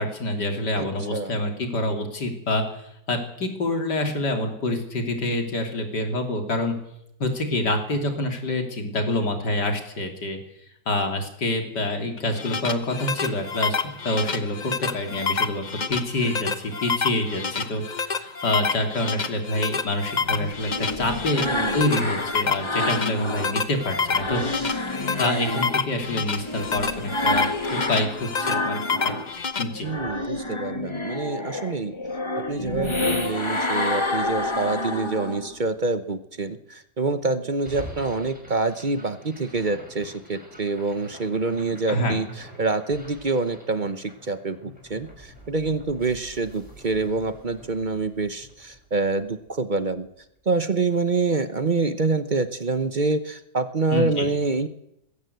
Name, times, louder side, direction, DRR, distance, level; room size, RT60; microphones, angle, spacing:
voice 1, 0.0-2.8 3.1-6.8 7.2-10.4 10.9-13.8 14.0-15.6 15.9-24.4 25.2-29.2 29.6-29.9 41.9-42.2 53.9-54.3, left 1 dB, 70° left, 4 dB, 3.7 m, -27 dB
voice 2, 0.8-1.4 21.3-21.9 29.8-32.0 32.5-50.1 50.5-54.7, right 3 dB, 35° right, 11 dB, 0.9 m, -26 dB
sound 1, 12.2-29.6, left 5 dB, 30° left, 0.9 m, -28 dB
sound 2, 20.1-23.6 23.9-29.3 29.7-35.6, left 2 dB, 15° left, 1.4 m, -29 dB
sound 3, 37.6-49.8, equal, 5° right, 6.6 m, -46 dB
20.0 x 16.0 x 8.0 m, 0.80 s
omnidirectional pair, 1.9 m